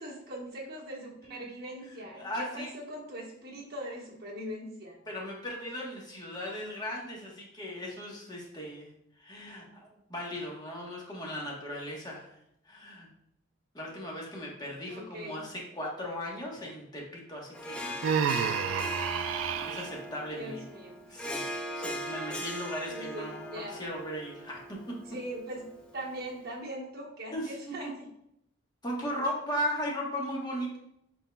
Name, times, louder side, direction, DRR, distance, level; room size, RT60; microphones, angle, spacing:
voice 1, 0.0-5.0 14.9-15.4 20.3-21.2 22.9-23.7 25.1-25.6 25.9-28.1, right 1 dB, 55° right, -3 dB, 1.2 m, -41 dB
voice 2, 2.1-2.7 5.1-8.9 9.2-12.3 12.6-13.1 13.7-18.0 19.6-20.6 21.1-21.5 21.7-25.0 27.3-27.9 28.8-30.8, equal, 20° left, -3 dB, 1.1 m, -37 dB
Harp, 17.5-26.2, equal, 5° left, 0.5 m, -39 dB
Human voice, 18.0-19.9, right 7 dB, 80° right, 0.3 m, -29 dB
6.0 x 3.9 x 2.2 m, 0.77 s
head